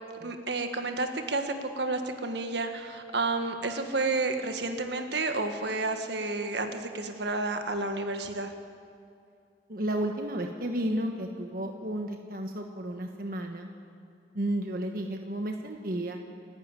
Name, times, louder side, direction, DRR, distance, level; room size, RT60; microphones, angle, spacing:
voice 1, 0.1-8.5, right 3 dB, 70° right, 6 dB, 1.5 m, -31 dB
voice 2, 9.7-13.7 14.3-16.2, right 1 dB, 50° right, 3 dB, 1.3 m, -32 dB
29.0 x 11.5 x 9.0 m, 2.4 s
head